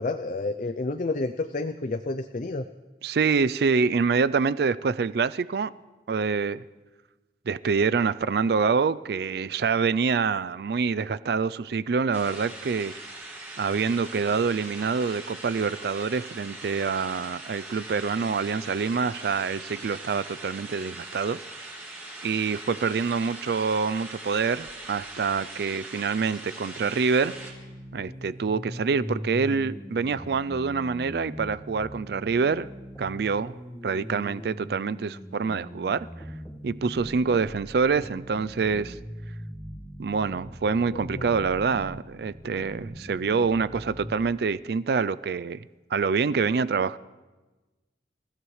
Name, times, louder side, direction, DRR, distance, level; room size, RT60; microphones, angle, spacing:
voice 1, 0.0-2.6 40.9-41.3, left 3 dB, 45° left, 0.5 m, -30 dB
voice 2, 3.0-5.7 6.1-6.6 7.5-12.9 13.6-21.4 22.2-27.3 27.9-32.7 33.0-33.5 33.8-36.1 36.6-39.0 40.0-45.6 45.9-47.0, right 5 dB, 65° right, 0.4 m, -26 dB
sound 1, 12.1-27.5, right 2 dB, 15° right, 3.4 m, -41 dB
sound 2, 27.2-44.2, equal, 5° left, 1.7 m, -41 dB
27.5 x 15.5 x 3.2 m
head